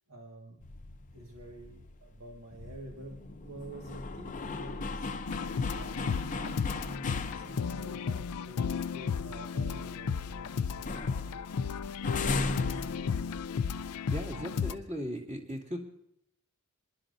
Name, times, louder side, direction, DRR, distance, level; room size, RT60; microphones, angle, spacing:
voice 1, 0.1-0.6 1.1-5.1 5.8-11.0, right 1 dB, 65° right, -1 dB, 1.8 m, -47 dB
sound 1, 0.6-7.9 8.4-8.5 8.8-10.4 10.7-13.7, left 3 dB, 35° left, 0.7 m, -38 dB
sound 2, 5.3-14.7, left 6 dB, 90° left, 0.5 m, -34 dB
voice 2, 14.1-15.8, equal, 35° right, -1 dB, 2.5 m, -37 dB
27.0 x 11.5 x 2.6 m, 0.73 s
head